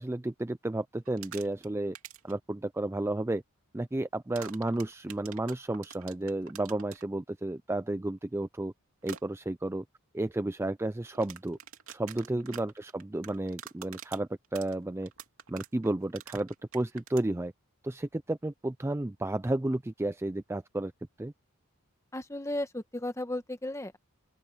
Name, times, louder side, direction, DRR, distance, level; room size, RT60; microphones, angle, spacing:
voice 1, 0.0-2.0 2.2-3.4 3.7-8.7 9.0-9.8 10.1-11.6 11.9-15.1 15.5-17.5 17.8-20.9 21.2-21.3, right 1 dB, 10° right, 0.4 m, -32 dB
sound 1, 1.0-1.7 1.9-2.3 4.3-7.0 9.0-9.2 11.1-17.3, right 8 dB, 65° right, 3.0 m, -46 dB
voice 2, 22.1-24.0, left 1 dB, 15° left, 1.3 m, -35 dB
open air
head